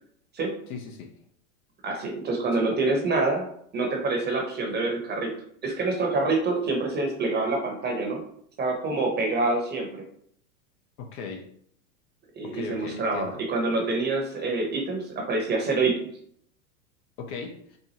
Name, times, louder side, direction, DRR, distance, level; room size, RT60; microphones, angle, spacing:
voice 1, 0.7-1.1 2.5-2.7 11.0-11.5 12.4-13.4 17.2-17.8, left 5 dB, 45° left, 3 dB, 0.6 m, -38 dB
voice 2, 1.8-3.5 3.7-5.3 5.6-8.2 8.6-10.0 12.4-16.1, right 3 dB, 25° right, 1 dB, 0.9 m, -26 dB
4.3 x 2.2 x 2.9 m, 0.65 s
hypercardioid pair, 110°, 43 cm